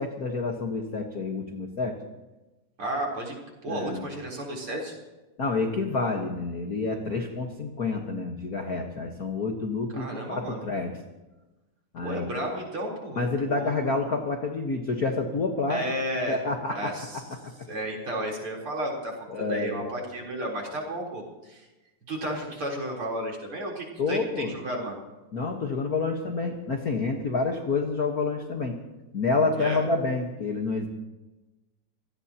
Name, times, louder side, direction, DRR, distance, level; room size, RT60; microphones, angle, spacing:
voice 1, 0.0-2.0 3.7-4.0 5.4-10.9 11.9-12.3 13.2-15.8 16.3-16.9 19.3-19.8 24.0-24.5 25.3-28.7 29.1-30.9, left 3 dB, 45° left, 3 dB, 1.2 m, -28 dB
voice 2, 2.8-3.3 3.6-4.9 9.9-10.6 12.0-13.2 13.5-13.9 15.7-16.4 16.7-17.2 17.7-21.7 22.1-25.0 29.5-29.8, right 1 dB, 40° right, -1 dB, 4.7 m, -33 dB
26.5 x 18.0 x 3.0 m, 1.1 s
omnidirectional pair, 3.6 m